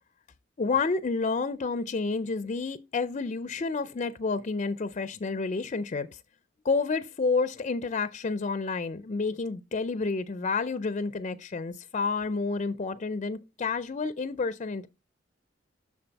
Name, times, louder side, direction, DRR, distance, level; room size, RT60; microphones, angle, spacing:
voice 1, 0.6-6.1 6.6-14.9, left 4 dB, 40° left, 0.4 m, -30 dB
6.9 x 6.3 x 4.0 m
head